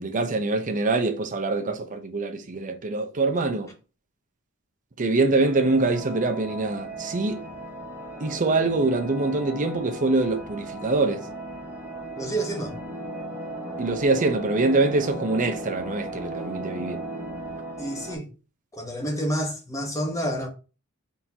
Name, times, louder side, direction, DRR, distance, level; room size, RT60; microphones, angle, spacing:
voice 1, 0.0-3.7 5.0-7.5 8.2-11.3 13.8-17.0, right 3 dB, 35° right, 0.6 m, -24 dB
sound 1, 5.4-18.2, right 1 dB, 10° right, 1.3 m, -37 dB
voice 2, 12.2-12.8 17.8-18.3 18.7-20.5, right 1 dB, 15° left, 1.0 m, -29 dB
4.3 x 3.5 x 2.8 m
head